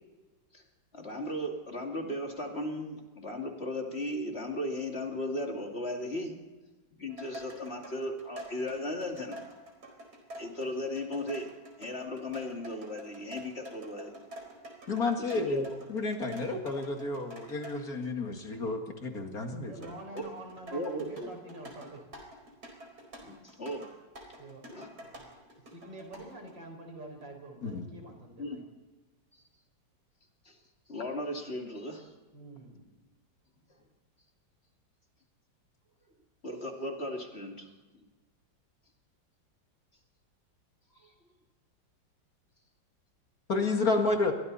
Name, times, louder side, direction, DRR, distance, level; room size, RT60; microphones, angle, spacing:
voice 1, 0.9-6.4 7.0-9.4 10.4-11.5 11.8-14.1 15.2-15.8 20.1-20.2 20.7-21.3 23.2-23.9 24.7-24.9 28.4-28.7 30.4-30.6 30.9-32.1 36.4-37.7 40.9-41.1, left 1 dB, 35° left, 2 dB, 2.7 m, -36 dB
sound 1, 7.1-17.8 19.8-26.5, right 1 dB, 55° right, 5.0 m, -47 dB
voice 2, 14.9-19.9 27.6-27.9 43.5-44.3, left 3 dB, 50° left, 4 dB, 2.4 m, -31 dB
voice 3, 19.7-22.0 24.4-24.7 25.0-25.3 25.7-28.6 32.3-32.8, right 1 dB, 70° right, 3 dB, 5.3 m, -46 dB
29.5 x 22.5 x 4.2 m, 1.2 s
omnidirectional pair, 2.1 m